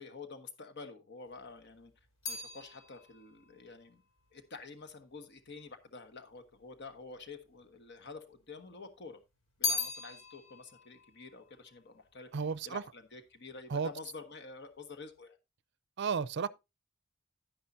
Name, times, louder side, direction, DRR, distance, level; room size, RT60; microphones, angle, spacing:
voice 1, 0.0-1.9 2.3-4.0 4.3-9.2 9.6-12.3 12.6-15.4, left 4 dB, 55° left, 1.3 m, -49 dB
sound 1, 1.3-5.7 6.5-7.3 7.6-8.7 9.0-12.6 12.8-13.4, left 4 dB, 80° left, 3.8 m, -40 dB
voice 2, 12.3-12.8 13.7-13.9 16.0-16.5, right 5 dB, 60° right, 0.5 m, -33 dB
10.5 x 10.0 x 2.7 m
head